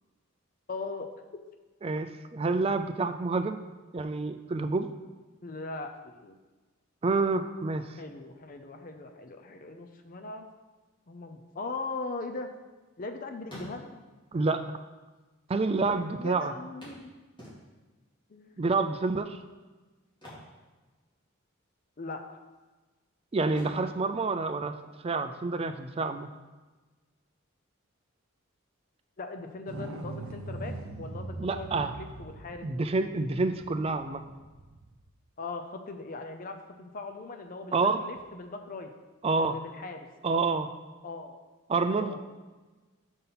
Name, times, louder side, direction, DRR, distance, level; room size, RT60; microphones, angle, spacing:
voice 1, 0.7-1.1 5.4-6.4 8.0-10.5 11.1-12.5 13.0-14.0 16.2-17.1 18.3-18.6 22.0-22.4 29.2-32.7 35.4-38.9 39.3-40.1 41.0-41.4 41.7-42.2, left 3 dB, 40° left, 5 dB, 0.5 m, -40 dB
voice 2, 1.8-3.6 3.9-4.9 7.0-8.0 14.3-14.8 15.5-16.5 18.6-19.4 23.3-24.8 25.0-26.3 31.4-31.9 32.6-34.2 37.7-38.0 39.2-39.6 40.2-40.7 41.7-42.2, right 3 dB, 30° right, 9 dB, 0.4 m, -28 dB
sound 1, 12.1-13.1 13.4-14.2 15.1-15.2 15.5-15.6 16.8-18.0 20.0-21.4 21.6-21.9 22.4-23.0 23.5-25.2 27.2-27.3 27.7-27.8, equal, 25° left, 2.4 m, -49 dB
sound 2, 29.7-35.1 38.2-38.3, right 2 dB, 80° right, 0.6 m, -42 dB
5.7 x 5.4 x 5.8 m, 1.2 s
head